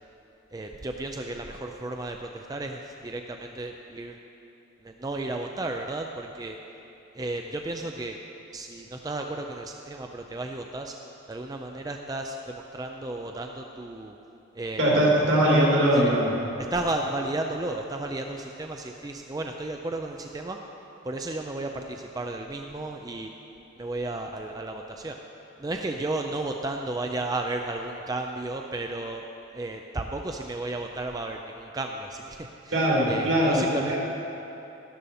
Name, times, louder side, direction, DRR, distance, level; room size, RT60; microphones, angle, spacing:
voice 1, 0.5-4.2 4.8-6.6 7.1-8.2 8.5-10.9 11.3-14.1 14.5-14.8 15.9-16.2 16.6-20.6 21.0-23.3 23.8-25.2 25.6-29.3 29.5-34.0, right 2 dB, 20° right, 3 dB, 0.4 m, -33 dB
voice 2, 14.8-16.3 32.7-34.0, right 1 dB, 75° right, -4 dB, 2.8 m, -21 dB
12.5 x 12.0 x 4.2 m, 3.0 s
head